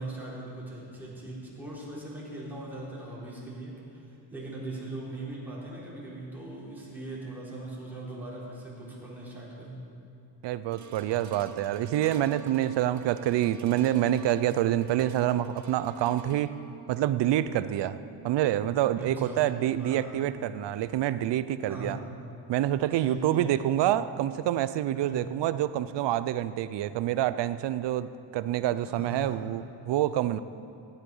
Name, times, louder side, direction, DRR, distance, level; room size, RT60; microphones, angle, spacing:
voice 1, 0.0-4.0 4.3-9.9 18.9-19.4 19.8-20.1 21.6-22.0 23.0-23.6 24.9-25.2 28.8-29.4, right 2 dB, 5° right, -7 dB, 4.0 m, -40 dB
voice 2, 10.4-16.6 16.9-18.0 18.2-22.0 22.5-30.4, right 12 dB, 65° right, 14 dB, 0.6 m, -27 dB
sound 1, 10.7-21.1 21.7-21.8, right 5 dB, 40° right, 0.9 m, -49 dB
16.5 x 11.0 x 5.5 m, 2.6 s
cardioid pair, 115°, 46 cm